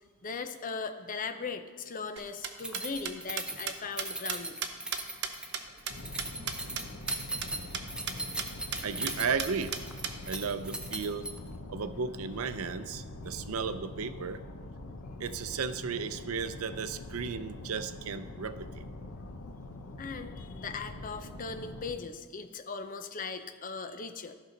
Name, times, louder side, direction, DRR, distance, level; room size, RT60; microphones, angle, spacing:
voice 1, 0.2-4.6 20.0-24.3, left 4 dB, 40° left, 8 dB, 0.6 m, -39 dB
sound 1, 2.2-6.8 7.1-7.2 7.4-7.5 7.7-8.5 8.7-8.8 9.1-10.1, right 8 dB, 55° right, 0.7 m, -35 dB
Keys jangling, 2.6-11.6, right 2 dB, 5° right, 0.7 m, -39 dB
sound 2, 5.9-21.9, left 2 dB, 70° left, 0.8 m, -44 dB
voice 2, 8.8-9.7 10.3-11.3 11.7-14.4 15.2-18.8, right 5 dB, 90° right, 11 dB, 0.5 m, -34 dB
14.5 x 5.5 x 3.9 m, 1.5 s
head